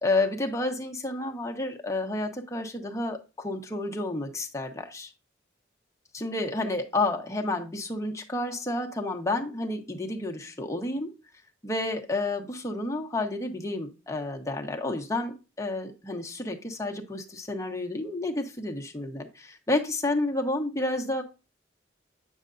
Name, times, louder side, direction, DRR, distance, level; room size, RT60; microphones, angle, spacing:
voice 1, 0.0-5.1 6.1-11.1 11.6-21.2, left 2 dB, 15° left, 2 dB, 1.0 m, -30 dB
8.7 x 6.6 x 2.6 m, 0.29 s
head